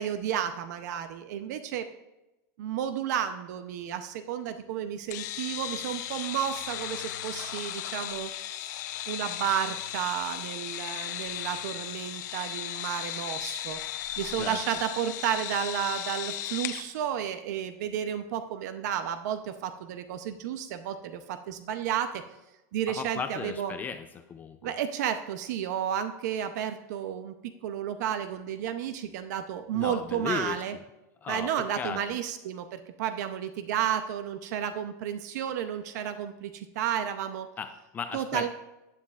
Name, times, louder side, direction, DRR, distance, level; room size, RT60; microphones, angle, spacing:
voice 1, 0.0-1.9 2.6-8.3 9.1-13.8 14.2-22.2 22.7-23.7 24.6-30.8 31.3-37.5 38.1-38.5, right 9 dB, 75° right, 9 dB, 0.7 m, -32 dB
sound 1, 5.1-16.8, left 12 dB, 80° left, 0.7 m, -36 dB
voice 2, 22.9-24.7 29.7-30.6 31.2-32.0 37.6-38.5, left 6 dB, 20° left, 8 dB, 0.4 m, -36 dB
12.5 x 10.0 x 2.4 m, 0.99 s
supercardioid pair, 160°, 9 cm